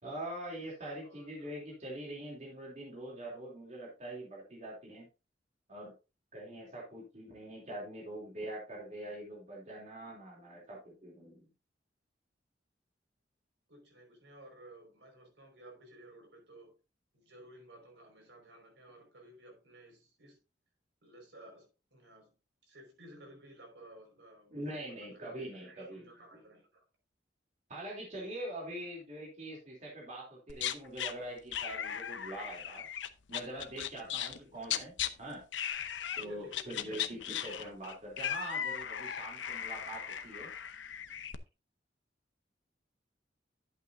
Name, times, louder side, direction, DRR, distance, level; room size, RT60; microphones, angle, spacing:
voice 1, 0.0-5.0 5.7-5.9 6.3-11.5 24.5-26.1 27.7-32.9 33.3-35.4 36.2-40.5, right 1 dB, 40° right, 3.0 m, -43 dB
voice 2, 1.0-1.5 13.7-16.7 17.1-20.4 21.0-22.3 22.6-25.3 25.6-26.9 28.9-29.0 31.1-31.2 34.0-34.6 36.2-37.1, right 1 dB, 75° right, 5.2 m, -56 dB
sound 1, 30.5-31.1 31.5-34.4 34.6-35.1 35.5-36.2 36.5-41.4, left 9 dB, 85° left, 0.8 m, -37 dB
11.5 x 8.2 x 2.6 m
head